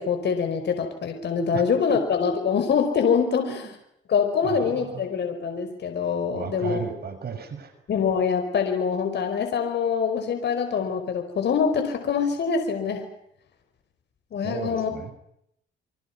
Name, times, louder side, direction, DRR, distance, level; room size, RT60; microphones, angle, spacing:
voice 1, 0.0-3.6 4.1-6.8 7.9-13.0 14.3-14.9, left 6 dB, 60° left, 5 dB, 4.9 m, -24 dB
voice 2, 3.4-3.7 4.4-5.1 6.3-7.7 14.4-15.1, right 6 dB, 55° right, 8 dB, 6.2 m, -34 dB
28.5 x 25.5 x 6.0 m, 0.76 s
cardioid pair, 90°, 20 cm